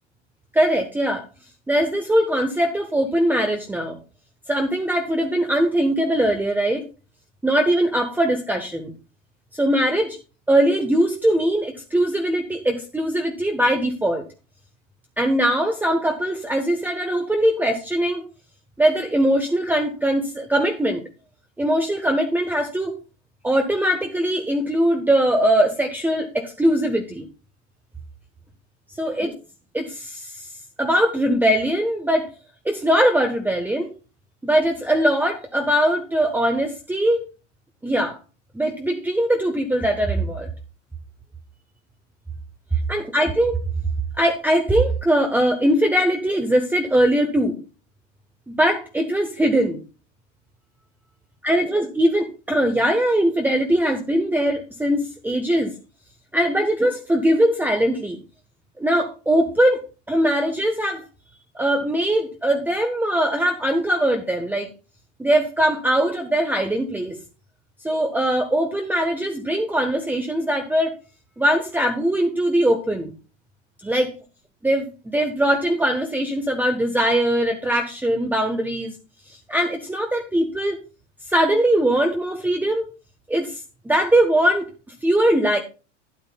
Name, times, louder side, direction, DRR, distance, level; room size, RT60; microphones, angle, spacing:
voice 1, 0.5-1.2 1.7-4.0 4.5-6.8 7.4-8.9 9.5-10.2 10.5-14.2 15.2-18.3 18.8-21.0 21.6-22.9 23.4-27.3 29.0-29.3 29.7-30.5 30.8-32.3 32.6-33.9 34.4-37.2 37.8-38.2 38.5-40.5 42.9-43.6 44.2-47.6 48.5-49.8 51.4-55.7 56.3-58.2 58.8-59.8 60.1-61.0 61.5-64.7 65.2-67.2 67.8-70.9 71.4-73.1 73.8-74.1 74.6-74.9 75.1-78.9 79.3-80.8 81.3-82.9 83.3-83.6 83.8-84.7 85.0-85.6, right 1 dB, 5° right, 4 dB, 1.2 m, -21 dB
12.0 x 10.0 x 2.3 m, 0.34 s
figure-of-eight pair, 90°, 37 cm